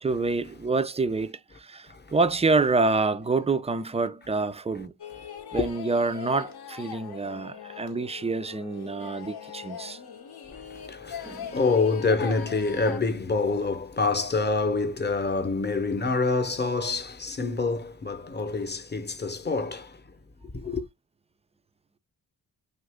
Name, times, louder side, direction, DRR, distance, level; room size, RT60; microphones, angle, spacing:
voice 1, 0.0-4.9 5.5-10.0 11.2-11.5, right 3 dB, 15° right, 0.3 m, -27 dB
sound 1, 5.0-13.0, left 7 dB, 60° left, 0.7 m, -41 dB
voice 2, 10.9-20.0 20.5-20.8, left 3 dB, 25° left, 0.7 m, -26 dB
2.8 x 2.5 x 3.4 m
cardioid pair, 50°, 43 cm